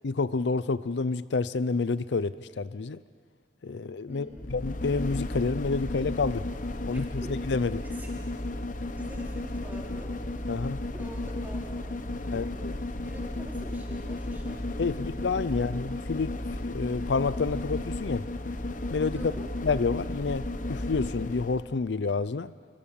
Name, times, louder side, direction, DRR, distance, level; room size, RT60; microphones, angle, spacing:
voice 1, 0.0-3.0 3.6-6.4 6.8-7.8 10.5-10.8 12.3-12.7 14.8-16.3 16.6-18.2 18.9-19.3 19.6-20.4 20.7-22.5, left 4 dB, 85° left, 16 dB, 0.5 m, -29 dB
voice 2, 4.1-4.5 6.9-7.3 7.8-8.1 8.9-10.1 10.9-12.7 13.0-15.7 19.1-19.5, equal, 10° right, -3 dB, 4.6 m, -46 dB
sound 1, 4.3-21.7 22.0-22.1, left 1 dB, 45° left, 0.9 m, -34 dB
27.0 x 24.5 x 7.1 m, 2.1 s
head